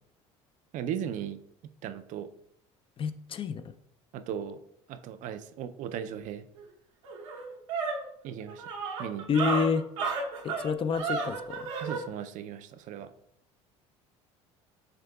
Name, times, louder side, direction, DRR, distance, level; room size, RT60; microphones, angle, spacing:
voice 1, 0.7-1.4 1.8-2.3 4.1-4.6 4.9-6.5 8.2-8.6 9.0-9.3 11.8-13.1, right 9 dB, 55° right, 10 dB, 0.4 m, -37 dB
voice 2, 3.0-3.6 9.3-9.8 10.4-11.6, left 5 dB, 35° left, 11 dB, 0.4 m, -28 dB
sound 1, 6.6-6.7 7.0-12.0, right 4 dB, 90° right, 0.8 m, -32 dB
6.6 x 3.4 x 2.3 m, 0.74 s
supercardioid pair, 80°, 15 cm